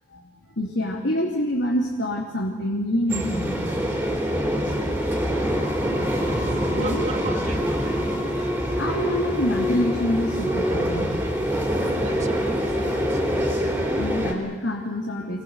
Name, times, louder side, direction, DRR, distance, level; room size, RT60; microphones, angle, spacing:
voice 1, 0.5-3.6 6.8-7.1 8.7-11.1 13.9-15.4, left 1 dB, 75° left, -1 dB, 2.8 m, -26 dB
sound 1, 3.1-14.3, equal, 10° right, 3.6 m, -25 dB
voice 2, 6.7-7.8 8.3-8.6 11.7-13.5, right 2 dB, 35° right, 5 dB, 2.1 m, -35 dB
26.5 x 19.0 x 8.0 m, 1.3 s
head